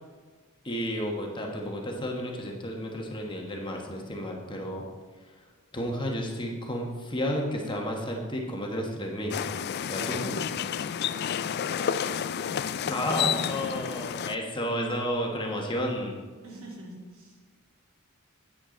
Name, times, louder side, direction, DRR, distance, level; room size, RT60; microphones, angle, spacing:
voice 1, 0.6-4.8 5.7-9.4 9.8-10.3 12.9-16.2, equal, 20° left, 0 dB, 1.3 m, -32 dB
sound 1, 9.3-14.4, left 8 dB, 50° left, 0.3 m, -30 dB
voice 2, 11.8-12.2 12.8-13.7 16.4-17.4, right 1 dB, 70° right, -2 dB, 2.8 m, -45 dB
11.0 x 8.7 x 3.9 m, 1.4 s
head